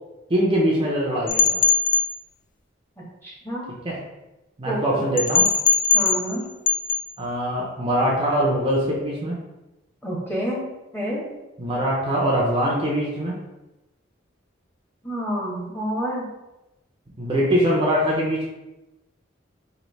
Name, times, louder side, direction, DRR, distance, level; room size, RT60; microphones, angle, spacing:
voice 1, 0.3-1.6 3.8-4.0 4.6-5.5 7.2-9.4 11.6-13.4 17.2-18.5, equal, 25° right, -4 dB, 0.6 m, -22 dB
sound 1, 1.3-2.1 5.2-6.4 6.7-7.0, left 5 dB, 45° left, 0.4 m, -19 dB
voice 2, 3.2-3.7 4.6-5.0 5.9-6.5 10.0-10.6 10.9-11.2 15.0-16.3, equal, 10° left, -5 dB, 1.1 m, -28 dB
3.2 x 2.7 x 4.0 m, 0.99 s
head